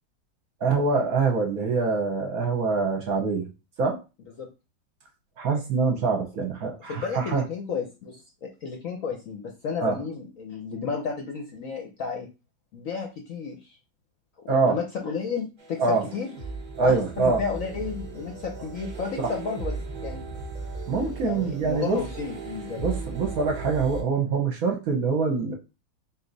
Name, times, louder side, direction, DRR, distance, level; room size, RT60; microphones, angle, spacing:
voice 1, 0.6-3.5 3.8-4.0 5.4-7.4 9.8-10.0 14.5-14.8 15.8-16.1 16.8-17.4 19.2-19.3 20.9-22.0 22.8-25.5, right 4 dB, 60° right, 2 dB, 1.0 m, -24 dB
voice 2, 6.9-12.3 12.7-13.8 14.4-15.8 16.1-16.3 16.8-19.7 20.0-20.2 21.2-22.8, left 5 dB, 65° left, 2 dB, 0.9 m, -32 dB
sound 1, 15.6-24.0, right 3 dB, 30° right, 0.9 m, -37 dB
4.1 x 2.8 x 3.9 m, 0.29 s
omnidirectional pair, 2.0 m